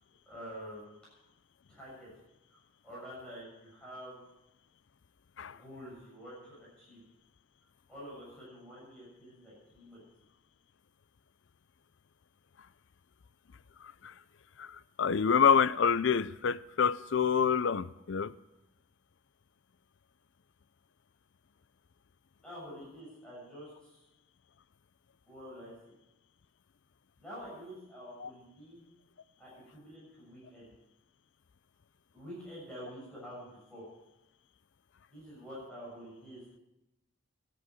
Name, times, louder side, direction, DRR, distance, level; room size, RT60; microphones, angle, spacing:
voice 1, 0.3-0.9 1.7-2.1 2.5-4.2 5.5-7.0 7.9-10.0 22.4-23.9 25.3-26.0 27.2-28.8 29.4-30.7 32.1-33.8 35.1-36.4, equal, 5° left, 6.8 m, -47 dB
voice 2, 14.6-18.3 28.2-28.3, left 6 dB, 55° left, 0.4 m, -27 dB
13.5 x 10.0 x 7.7 m
head